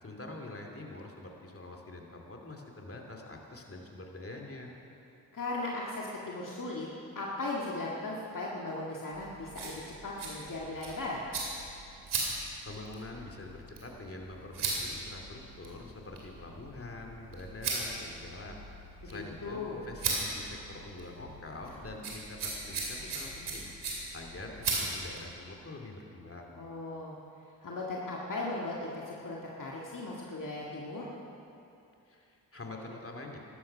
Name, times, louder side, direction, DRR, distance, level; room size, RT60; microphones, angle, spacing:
voice 1, 0.0-4.7 12.6-18.6 19.0-23.7 24.1-26.6 32.1-33.4, left 2 dB, 35° left, 1 dB, 2.6 m, -45 dB
voice 2, 5.3-6.9 7.2-11.2 19.0-19.8 26.6-27.1 27.6-31.1, left 2 dB, 55° left, -4 dB, 1.9 m, -37 dB
sound 1, 9.1-25.3, right 3 dB, 85° right, 2.8 m, -39 dB
14.5 x 12.5 x 5.6 m, 2.7 s
supercardioid pair, 40°, 38 cm